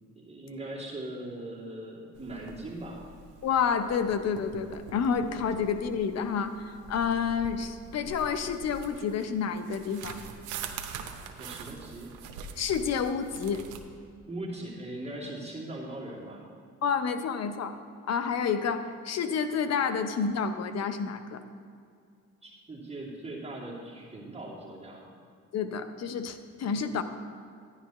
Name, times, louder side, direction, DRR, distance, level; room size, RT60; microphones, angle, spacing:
voice 1, 0.1-3.0 11.4-12.1 14.3-16.4 22.4-25.1, right 1 dB, 20° right, -5 dB, 2.7 m, -40 dB
sound 1, 2.1-13.8, right 6 dB, 90° right, 0.8 m, -44 dB
voice 2, 3.4-10.2 12.6-13.6 16.8-17.8 18.1-21.4 25.5-27.0, left 6 dB, 60° left, 9 dB, 0.8 m, -29 dB
11.5 x 10.5 x 3.1 m, 2.3 s
cardioid pair, 90°, 30 cm